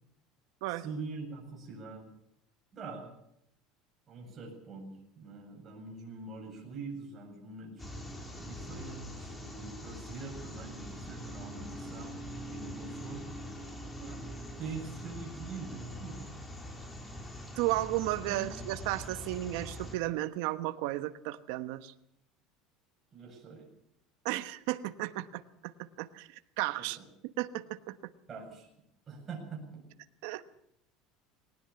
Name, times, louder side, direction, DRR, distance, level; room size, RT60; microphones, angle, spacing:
voice 1, 0.7-2.1 2.7-3.1 4.1-7.9 8.4-12.1 12.5-13.3 14.0-14.2 14.6-16.3 17.7-17.8 18.3-18.5 23.1-23.7 26.8-27.1 28.3-28.7 29.1-29.8, right 4 dB, 25° right, 0 dB, 7.6 m, -44 dB
sound 1, 7.8-19.9, equal, 15° left, 3.2 m, -43 dB
voice 2, 17.6-21.9 24.2-25.7 26.0-26.3 26.6-27.0 27.4-27.9 30.2-30.5, right 16 dB, 70° right, 11 dB, 1.2 m, -34 dB
20.5 x 18.5 x 7.1 m, 0.77 s
cardioid pair, 160°, 0 cm